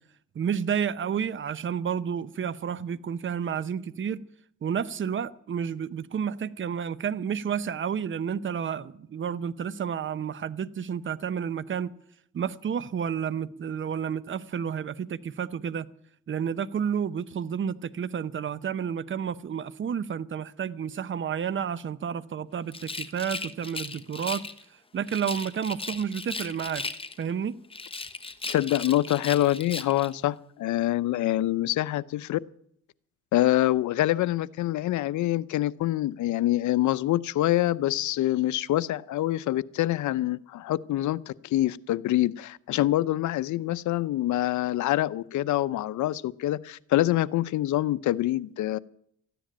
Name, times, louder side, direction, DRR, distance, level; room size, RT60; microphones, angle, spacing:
voice 1, 0.3-4.2 4.6-11.9 12.3-15.9 16.3-24.5 24.9-26.8 27.2-27.6, right 7 dB, 40° right, 0.8 m, -30 dB
Rattle, 22.7-24.6 25.1-27.3 27.7-30.1, left 3 dB, 20° left, 1.0 m, -37 dB
voice 2, 28.5-32.4 33.3-48.8, left 14 dB, 75° left, 0.7 m, -25 dB
14.0 x 10.0 x 8.9 m
cardioid pair, 90°, 30 cm